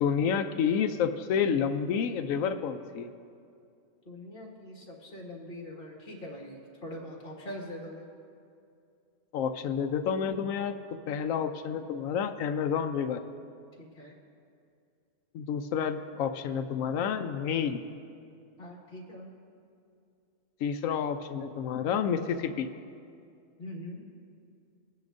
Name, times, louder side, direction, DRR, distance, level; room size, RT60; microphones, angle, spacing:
voice 1, 0.0-3.1 9.3-10.7 11.1-13.2 15.3-17.8 20.6-22.7, left 7 dB, 90° left, 7 dB, 1.0 m, -29 dB
voice 2, 4.1-8.1 13.8-14.1 18.6-19.3 23.6-24.0, left 1 dB, 45° left, -2 dB, 2.0 m, -43 dB
24.0 x 9.5 x 2.6 m, 2.4 s
omnidirectional pair, 1.4 m